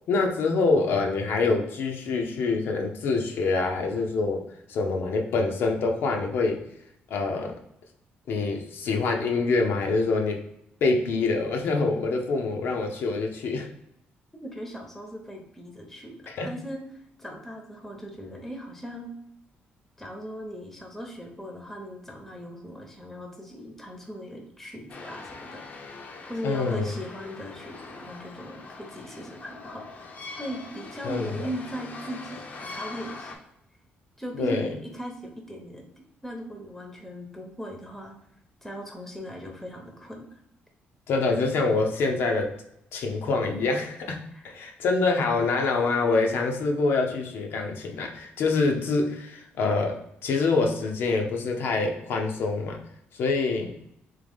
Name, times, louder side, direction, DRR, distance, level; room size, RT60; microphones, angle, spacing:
voice 1, 0.1-4.4 4.7-6.6 7.1-7.5 8.3-10.4 10.8-13.7 16.3-16.5 26.4-26.9 31.0-31.3 34.4-34.7 41.1-42.6 42.9-52.8 53.1-53.8, left 3 dB, 70° left, 2 dB, 0.7 m, -25 dB
voice 2, 14.4-16.2 16.4-16.8 17.2-19.1 20.0-25.9 26.3-30.1 30.4-33.3 34.2-35.8 36.2-38.1 38.6-40.3 44.3-44.5, equal, 5° left, 1 dB, 0.8 m, -38 dB
sound 1, 24.9-33.4, left 3 dB, 45° left, 0.6 m, -42 dB
3.7 x 3.0 x 3.5 m, 0.78 s
cardioid pair, 130°, 4 cm